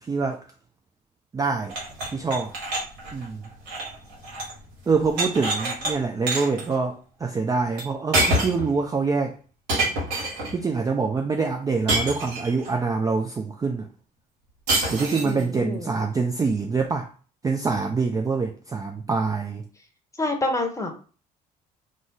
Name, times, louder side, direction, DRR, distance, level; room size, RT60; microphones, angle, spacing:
voice 1, 0.1-0.4 1.3-1.8 2.1-2.5 3.1-3.4 4.9-9.4 10.5-13.9 14.9-17.1 17.4-19.6, right 4 dB, 15° right, 3 dB, 0.3 m, -25 dB
sound 1, 1.7-4.6 4.9-5.9 6.3-6.7 7.8-8.7 9.7-10.6 11.9-12.7 14.7-15.4, right 1 dB, 70° right, 1.0 m, -26 dB
voice 2, 15.2-15.9 20.2-20.9, left 2 dB, 15° left, 3 dB, 0.9 m, -27 dB
2.5 x 2.0 x 3.7 m, 0.39 s
figure-of-eight pair, 55°, 21 cm